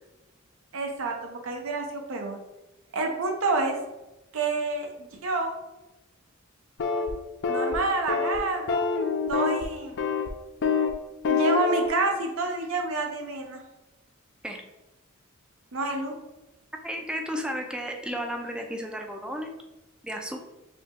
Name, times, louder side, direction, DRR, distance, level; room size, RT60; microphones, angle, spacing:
voice 1, 0.7-2.4 2.9-3.8 4.3-4.9 5.2-5.5 7.5-8.8 9.3-10.0 11.3-13.6 15.7-16.2, right 3 dB, 70° right, 3 dB, 0.6 m, -28 dB
sound 1, 6.8-7.1 7.4-7.8 8.1-8.4 8.7-9.6 10.0-10.3 10.6-10.9 11.2-11.9, left 5 dB, 60° left, 0.4 m, -25 dB
voice 2, 16.8-19.6 20.0-20.4, equal, 5° right, 3 dB, 0.4 m, -33 dB
5.0 x 2.3 x 2.8 m, 1.0 s
head